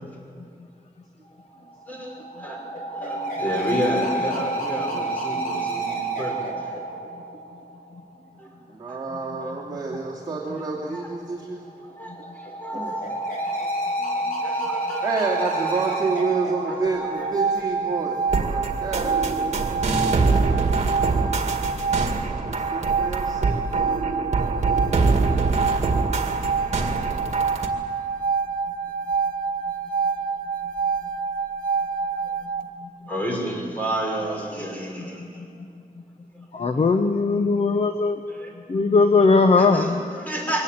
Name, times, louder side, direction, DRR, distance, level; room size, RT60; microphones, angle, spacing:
sound 1, 1.5-8.0 11.5-18.0, right 2 dB, 75° left, 4.8 m, -29 dB
voice 1, 1.9-2.6 2.9-6.8 8.4-8.5 8.9-9.0 9.4-9.5 10.6-10.7 10.9-11.0 12.0-13.6 14.4-16.0 16.7-17.4 33.1-35.4 38.3-38.5 39.5-40.6, right 1 dB, 10° left, -2 dB, 6.0 m, -31 dB
voice 2, 8.7-11.7 12.7-13.0 14.0-14.6 15.0-19.5 22.5-23.6 26.5-26.7, right 4 dB, 30° right, -5 dB, 2.6 m, -29 dB
sound 2, 16.8-32.7, right 5 dB, 75° right, 1.4 m, -27 dB
sound 3, 18.3-27.7, right 3 dB, 50° right, 2.0 m, -24 dB
voice 3, 36.5-38.2 38.7-40.0, left 4 dB, 45° left, 7 dB, 1.0 m, -19 dB
23.0 x 18.5 x 8.8 m, 2.3 s
wide cardioid pair, 165°, 15 cm